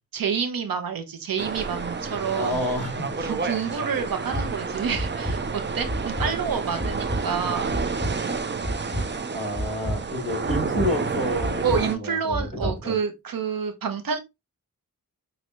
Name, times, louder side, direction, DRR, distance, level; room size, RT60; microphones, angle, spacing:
voice 1, 0.1-2.7 3.2-7.8 11.6-14.2, right 6 dB, 85° right, 0.8 m, -28 dB
sound 1, 1.4-12.0, right 4 dB, 30° right, 0.5 m, -30 dB
voice 2, 2.3-3.3 8.8-12.9, left 1 dB, 20° left, 3.3 m, -30 dB
sound 2, 4.3-4.4 4.9-5.4 5.9-6.3 6.8-7.2 7.7-8.1 8.6-9.0 9.5-10.0 10.5-10.9 11.4-11.8 12.3-12.7, equal, 5° left, 2.6 m, -28 dB
5.6 x 2.8 x 3.0 m
wide cardioid pair, 105°, 34 cm